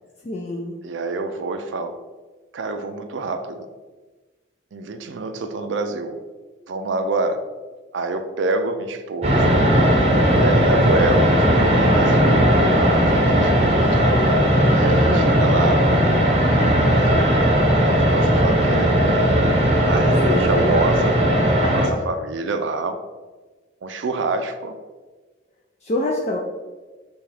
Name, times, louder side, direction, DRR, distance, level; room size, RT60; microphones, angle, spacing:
voice 1, 0.2-0.8 14.6-15.2 20.2-20.6 25.8-26.4, left 2 dB, 35° left, -1 dB, 0.4 m, -26 dB
voice 2, 0.8-2.0 2.5-3.7 4.7-6.2 6.7-7.4 7.9-9.6 10.3-12.4 12.7-14.0 14.7-15.9 16.9-17.3 17.8-19.0 19.9-23.0 23.8-24.7, right 3 dB, 85° right, 7 dB, 0.4 m, -27 dB
sound 1, 9.2-21.9, equal, 35° right, 0.7 m, -17 dB
6.4 x 2.4 x 3.3 m, 1.3 s
head